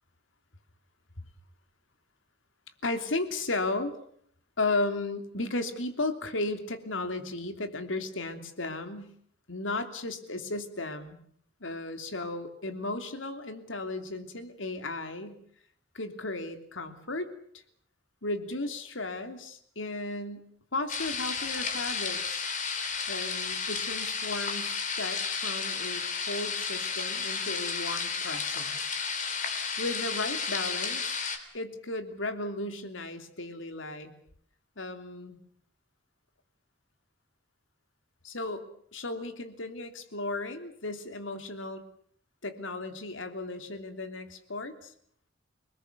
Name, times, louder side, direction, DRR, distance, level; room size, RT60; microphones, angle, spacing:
voice 1, 2.8-4.0 4.6-9.1 9.5-11.2 11.6-15.4 15.9-17.3 18.2-22.5 23.1-28.9 29.8-31.1 31.5-34.1 34.8-35.4 38.2-41.8 42.4-44.9, left 2 dB, 90° left, 8 dB, 3.1 m, -35 dB
sound 1, 20.9-31.4, left 5 dB, 40° left, 3.6 m, -32 dB
29.5 x 20.5 x 6.9 m, 0.63 s
head